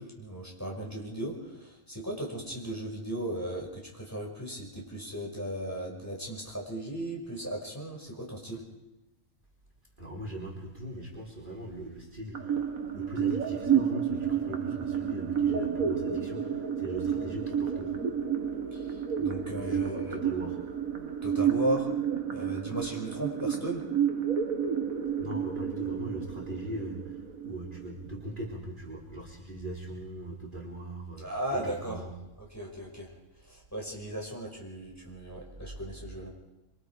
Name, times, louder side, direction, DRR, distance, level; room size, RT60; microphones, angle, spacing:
voice 1, 0.0-8.6 18.7-20.2 21.2-23.8 31.2-32.0 32.4-33.1 33.4-36.3, right 1 dB, 10° left, -2 dB, 5.8 m, -36 dB
voice 2, 10.0-12.6 12.9-17.9 19.5-20.6 25.2-32.1, right 1 dB, 35° right, -2 dB, 3.6 m, -40 dB
sound 1, 12.3-28.3, right 8 dB, 90° right, 2.0 m, -30 dB
26.5 x 24.5 x 4.9 m, 0.92 s
omnidirectional pair, 1.4 m